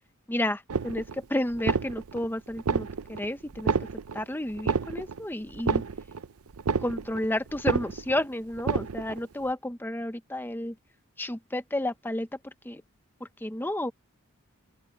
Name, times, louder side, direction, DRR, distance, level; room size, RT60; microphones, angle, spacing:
voice 1, 0.3-3.7 4.1-5.8 6.8-10.7 11.2-12.8 13.4-13.9, left 1 dB, 10° left, 0.8 m, -31 dB
sound 1, 0.7-1.2 1.5-2.2 2.6-3.2 3.5-4.2 4.6-5.2 5.5-6.2 6.5-7.2 7.5-8.2 8.6-9.2, right 5 dB, 85° right, 0.6 m, -29 dB
open air
head